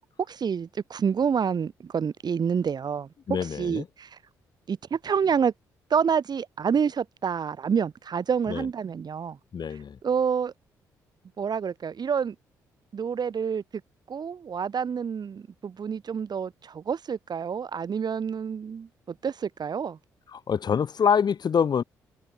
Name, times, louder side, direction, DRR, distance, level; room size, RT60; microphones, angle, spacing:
voice 1, 0.3-4.2 4.7-5.5 5.9-9.4 10.0-10.5 11.4-12.3 12.9-13.6 14.1-20.0, right 7 dB, 50° right, 5.2 m, -28 dB
voice 2, 3.3-3.8 8.5-8.6 9.5-10.0 20.3-21.8, left 7 dB, 50° left, 3.4 m, -25 dB
hypercardioid pair, 45°, 9 cm